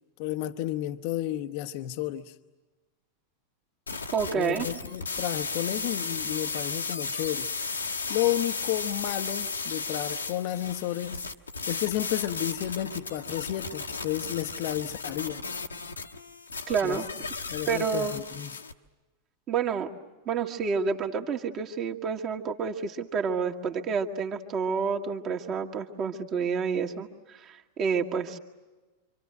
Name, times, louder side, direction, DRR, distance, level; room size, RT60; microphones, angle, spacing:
voice 1, 0.2-2.3 4.3-7.5 8.1-11.2 11.7-15.4 16.8-17.0 17.5-18.6, left 13 dB, 45° left, 0.9 m, -32 dB
sound 1, 3.9-18.7, left 4 dB, 75° left, 1.2 m, -35 dB
voice 2, 4.1-4.7 16.7-17.1 17.7-18.2 19.5-19.9 20.3-28.4, right 6 dB, 30° right, 1.9 m, -29 dB
27.0 x 25.5 x 7.9 m
figure-of-eight pair, 90°, 0 cm